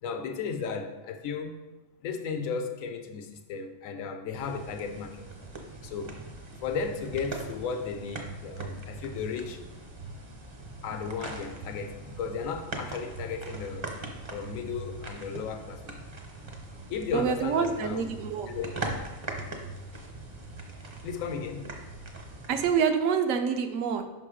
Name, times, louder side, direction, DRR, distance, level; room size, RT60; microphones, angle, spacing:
voice 1, 0.0-1.7 2.0-5.3 5.8-6.1 6.6-9.6 10.8-13.9 14.3-16.2 16.9-18.1 18.4-18.8 21.0-21.7, left 5 dB, 80° left, 6 dB, 1.0 m, -35 dB
sound 1, 4.3-22.7, right 2 dB, 35° right, 0.5 m, -41 dB
voice 2, 17.1-18.5 22.5-24.0, right 6 dB, 75° right, 7 dB, 0.9 m, -26 dB
5.6 x 3.8 x 4.8 m, 1.1 s
omnidirectional pair, 1.4 m